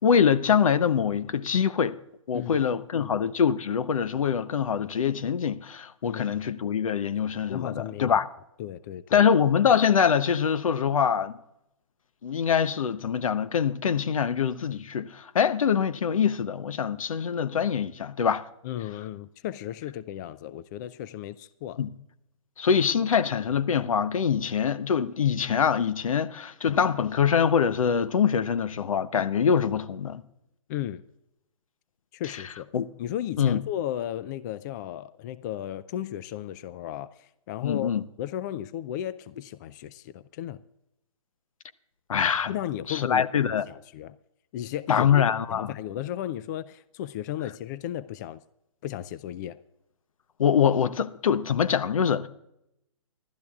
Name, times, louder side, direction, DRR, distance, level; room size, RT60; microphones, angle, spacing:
voice 1, 0.0-2.0 2.3-8.3 9.1-11.3 12.2-18.5 21.8-21.9 22.6-30.2 32.7-32.9 33.4-33.6 37.6-38.0 42.1-42.5 42.9-43.6 44.9-45.7 50.4-52.3, left 7 dB, 75° left, 0.8 m, -24 dB
voice 2, 2.3-2.7 3.0-3.1 6.0-6.4 7.5-8.2 8.6-9.3 18.6-21.8 30.7-31.0 32.1-32.7 33.0-40.6 42.5-44.1 44.5-45.1 45.5-48.4 48.8-49.6, left 11 dB, 35° left, 0.4 m, -35 dB
26.0 x 12.5 x 2.4 m
hypercardioid pair, 140°, 17 cm